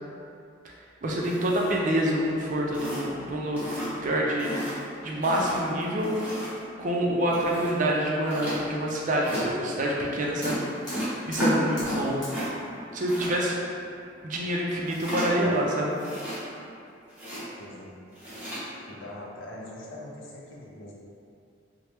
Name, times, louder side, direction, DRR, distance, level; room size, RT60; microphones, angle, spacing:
voice 1, 1.0-6.5 6.8-10.6 11.3-12.2 12.9-13.6 14.2-15.9 18.3-18.4, right 1 dB, 40° right, -2 dB, 0.4 m, -27 dB
sound 1, 1.2-1.9 2.3-2.4 2.7-3.2 3.6-4.1 4.4-4.8 5.2-6.7 7.3-7.7 8.3-8.6 9.2-9.4 10.4-12.5 12.7-13.3 14.9-15.5 15.9-16.7 17.1-17.4 18.1-18.6, equal, 10° right, 0.8 m, -33 dB
Fire, 9.8-15.3, equal, 20° left, 0.8 m, -45 dB
voice 2, 17.2-18.0 18.9-20.9, left 1 dB, 85° left, -4 dB, 0.6 m, -42 dB
2.9 x 2.0 x 3.3 m, 2.5 s
head